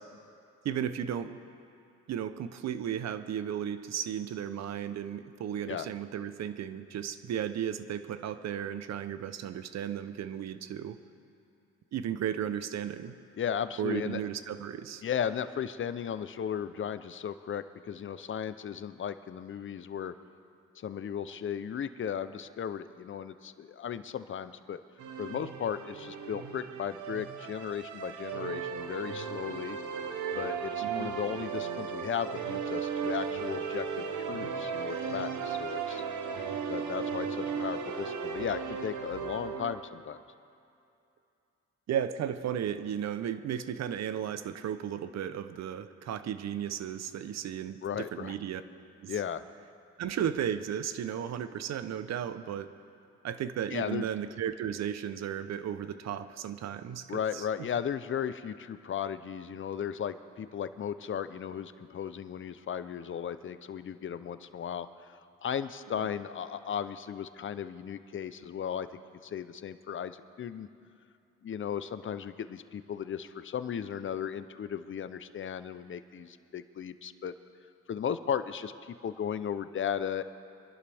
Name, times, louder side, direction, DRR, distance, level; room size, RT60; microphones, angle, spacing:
voice 1, 0.6-1.4 2.1-11.0 11.9-13.1 13.8-15.0 30.8-31.1 41.9-48.6 49.0-49.2 50.0-52.7 53.2-57.5, right 9 dB, 60° right, 12 dB, 0.8 m, -34 dB
voice 2, 13.4-14.2 15.0-20.1 20.8-24.8 25.2-29.8 30.3-36.0 36.7-40.2 47.8-48.3 49.1-49.4 53.7-54.1 57.1-68.9 69.2-70.7 71.4-77.3 77.9-80.2, left 8 dB, 40° left, 12 dB, 0.7 m, -36 dB
sound 1, 25.0-39.7, right 6 dB, 75° right, 1.1 m, -36 dB
24.0 x 11.5 x 3.5 m, 2.6 s
cardioid pair, 90°, 30 cm